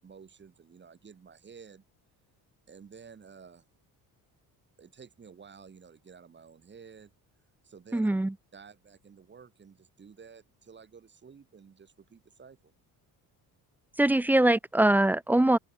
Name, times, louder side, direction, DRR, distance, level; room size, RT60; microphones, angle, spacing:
voice 1, 0.0-1.8 2.7-3.7 4.8-7.1 7.6-8.1 8.5-12.7, right 6 dB, 30° right, 5.4 m, -52 dB
voice 2, 7.9-8.3 14.0-15.6, right 1 dB, 5° right, 0.4 m, -22 dB
cardioid pair, 165°, 39 cm